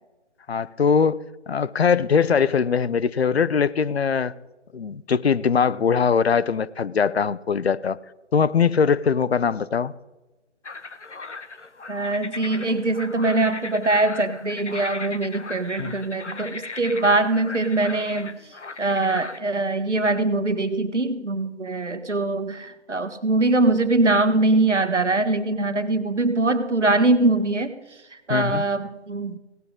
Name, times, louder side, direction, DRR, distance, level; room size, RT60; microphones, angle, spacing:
voice 1, 0.5-1.2 1.5-4.3 4.7-8.0 8.3-9.9 15.8-16.0 28.3-28.6, left 6 dB, 65° left, 19 dB, 0.6 m, -21 dB
sound 1, 10.6-19.4, left 4 dB, 85° left, 1.2 m, -37 dB
voice 2, 11.9-18.4 18.8-27.8 28.1-29.4, right 2 dB, 85° right, 10 dB, 1.4 m, -22 dB
17.5 x 12.5 x 3.7 m, 1.1 s
figure-of-eight pair, 150°, 35 cm